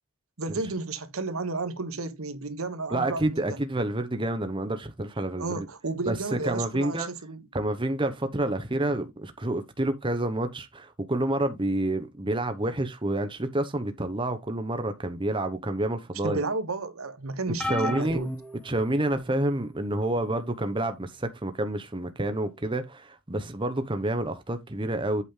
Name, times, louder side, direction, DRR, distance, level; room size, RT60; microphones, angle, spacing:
voice 1, 0.4-3.6 5.4-7.4 16.2-18.3, right 3 dB, 80° right, 1.3 m, -32 dB
voice 2, 2.9-5.7 6.1-7.1 7.5-16.4 17.6-18.2 18.6-25.2, right 1 dB, 25° right, 1.0 m, -28 dB
sound 1, 17.6-19.4 20.1-20.4 21.7-21.8, left 1 dB, 5° left, 1.2 m, -34 dB
8.4 x 5.1 x 3.7 m
head